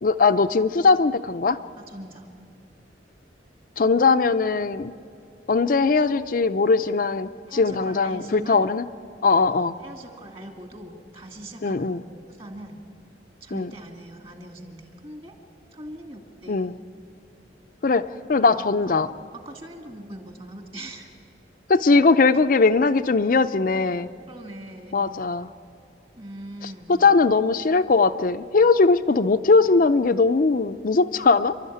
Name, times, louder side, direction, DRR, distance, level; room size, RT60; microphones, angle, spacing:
voice 1, 0.0-1.6 3.8-4.9 5.5-8.8 9.2-9.7 11.6-12.0 13.5-13.7 16.5-16.7 17.8-19.1 21.7-24.1 24.9-25.5 27.0-31.5, left 4 dB, 50° left, 8 dB, 0.5 m, -20 dB
voice 2, 1.8-2.3 7.5-8.7 9.5-12.8 13.4-15.3 15.7-16.7 18.4-19.0 19.3-21.1 23.7-24.0 24.3-25.0 26.2-27.0, right 1 dB, 30° right, 4 dB, 2.4 m, -41 dB
28.5 x 12.5 x 9.4 m, 2.5 s
head